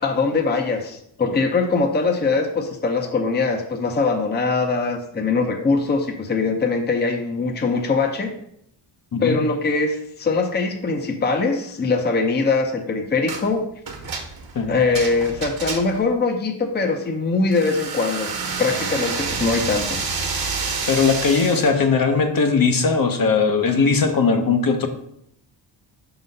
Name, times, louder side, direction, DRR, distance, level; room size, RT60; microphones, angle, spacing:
voice 1, 0.0-8.3 9.2-13.6 14.7-18.3 18.6-20.0, left 4 dB, 20° left, 4 dB, 0.7 m, -22 dB
sound 1, 13.3-13.5 13.9-16.1 17.5-21.8, right 4 dB, 50° right, 1.2 m, -28 dB
voice 2, 20.9-24.9, left 5 dB, 50° left, 5 dB, 0.9 m, -19 dB
5.5 x 4.0 x 5.3 m, 0.73 s
cardioid pair, 95°, 45 cm